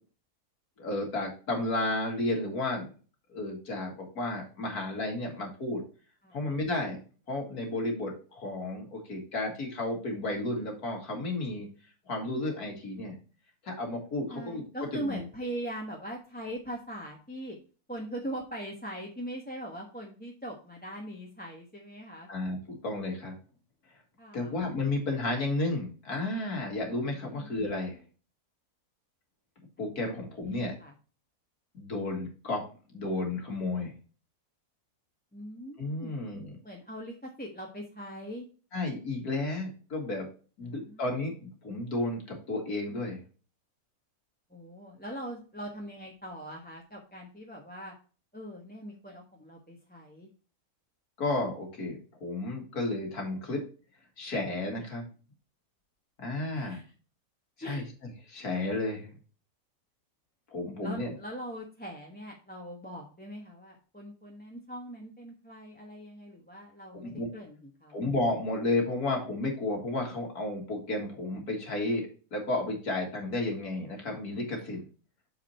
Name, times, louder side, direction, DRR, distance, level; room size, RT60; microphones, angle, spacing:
voice 1, 0.8-2.9 3.3-5.8 6.3-7.0 7.3-11.7 12.1-13.1 13.6-14.6 14.9-15.2 22.3-23.4 24.3-28.0 29.8-30.8 31.7-32.6 32.9-33.9 35.8-36.5 38.7-40.3 40.6-43.2 51.2-53.6 54.2-55.1 56.2-56.8 57.6-57.8 58.3-59.1 60.5-61.1 66.9-67.3 67.9-74.8, left 2 dB, 80° left, 1 dB, 2.9 m, -32 dB
voice 2, 14.3-17.6 17.9-22.3 24.2-24.5 27.2-27.6 30.1-30.9 35.3-36.3 36.6-38.5 40.6-41.0 44.5-47.9 48.3-50.3 56.5-56.8 57.6-57.9 60.8-68.1, right 1 dB, 5° left, -1 dB, 1.0 m, -41 dB
7.4 x 4.9 x 4.3 m, 0.37 s
omnidirectional pair, 1.6 m